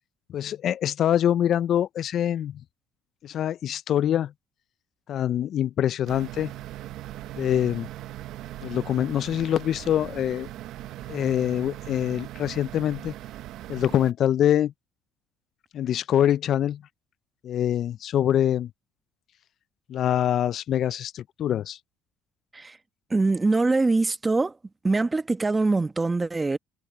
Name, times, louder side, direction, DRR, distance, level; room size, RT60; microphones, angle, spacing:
voice 1, 0.3-2.6 3.2-4.3 5.1-6.5 7.4-7.9 8.6-10.5 11.1-13.1 13.7-14.7 15.7-16.8 17.4-18.7 19.9-21.8, left 10 dB, 50° left, 0.3 m, -24 dB
sound 1, 6.1-14.1, right 14 dB, 65° right, 0.7 m, -39 dB
voice 2, 23.1-24.6 24.8-26.6, right 3 dB, 15° right, 1.0 m, -23 dB
cardioid pair, 105°, 0 cm